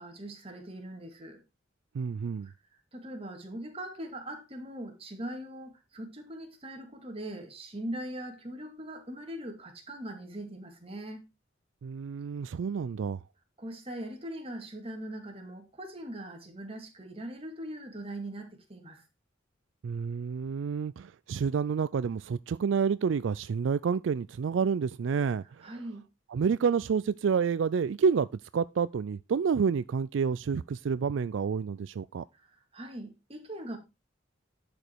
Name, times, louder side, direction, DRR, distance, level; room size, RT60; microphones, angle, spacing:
voice 1, 0.0-1.4 2.4-2.5 2.9-11.2 13.6-19.0 25.6-26.0 32.3-33.8, right 1 dB, 30° right, 2.2 m, -41 dB
voice 2, 1.9-2.5 11.8-13.2 19.8-25.7 26.3-28.3 28.5-32.2, right 6 dB, 80° right, 0.4 m, -29 dB
11.0 x 5.1 x 4.5 m
head